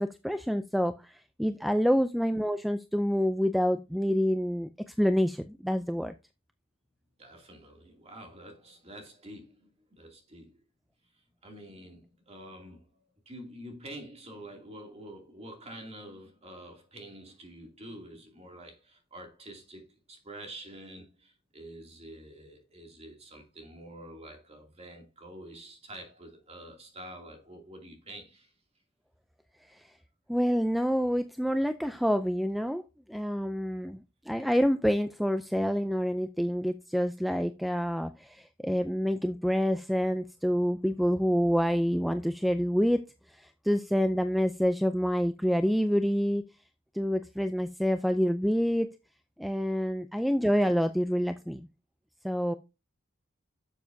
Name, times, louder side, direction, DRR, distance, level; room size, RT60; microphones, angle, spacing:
voice 1, 0.0-6.1 29.7-29.9 30.3-32.8 33.1-34.0 34.3-43.0 43.3-46.4 46.9-48.9 49.4-51.7 52.2-52.5, equal, ahead, 0.4 m, -27 dB
voice 2, 7.2-10.6 11.4-28.5, right 1 dB, 30° right, 2.6 m, -47 dB
11.5 x 7.1 x 2.7 m
head